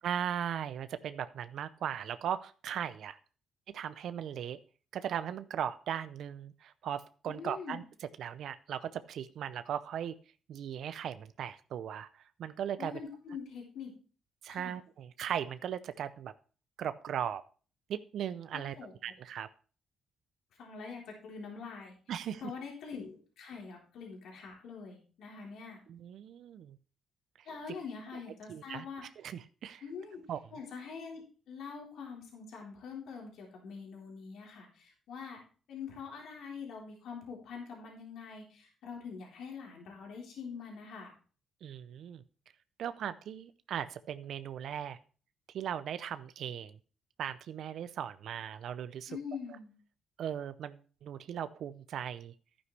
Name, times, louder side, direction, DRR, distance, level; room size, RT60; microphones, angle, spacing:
voice 1, 0.0-3.2 3.7-4.6 4.9-7.8 8.2-10.2 10.5-12.1 12.4-12.9 14.4-16.3 16.8-17.4 17.9-18.8 19.0-19.5 22.1-22.4 25.9-26.8 28.5-28.8 29.2-29.8 30.3-30.4 41.6-42.2 42.8-45.0 45.5-46.7 47.2-49.1 50.2-52.3, right 9 dB, 70° right, 12 dB, 0.6 m, -38 dB
voice 2, 7.3-7.8 12.8-13.9 14.5-14.7 18.5-18.9 20.6-21.9 22.4-25.8 27.5-29.0 29.8-30.2 30.5-31.2 31.5-35.4 35.7-41.1 49.1-49.7, left 5 dB, 75° left, -1 dB, 3.9 m, -44 dB
11.5 x 9.6 x 3.3 m, 0.38 s
cardioid pair, 90°, 0 cm